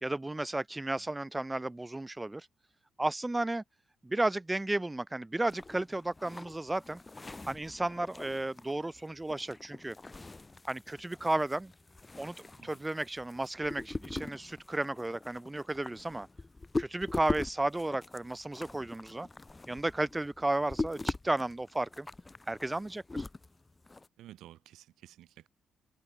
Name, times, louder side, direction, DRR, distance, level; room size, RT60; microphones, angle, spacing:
voice 1, 0.0-2.5 3.0-3.6 4.0-7.0 7.5-10.0 10.7-11.7 12.2-16.3 16.8-19.3 19.7-22.1 22.5-23.2, right 2 dB, 15° right, 1.3 m, -33 dB
sound 1, 5.5-24.1, left 2 dB, 20° left, 2.7 m, -42 dB
voice 2, 24.2-25.5, right 13 dB, 80° right, 5.1 m, -53 dB
cardioid pair, 90°, 0 cm